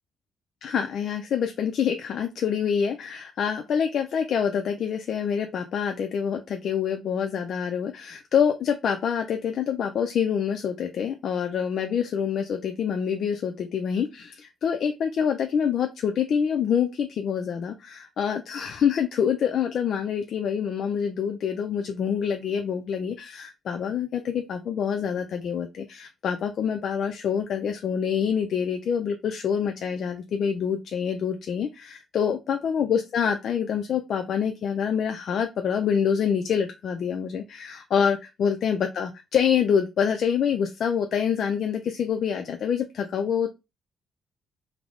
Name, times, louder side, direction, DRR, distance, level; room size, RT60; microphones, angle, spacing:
voice 1, 0.6-43.5, left 7 dB, 60° left, 5 dB, 0.4 m, -26 dB
3.4 x 2.0 x 3.6 m, 0.24 s
cardioid pair, 125°, 0 cm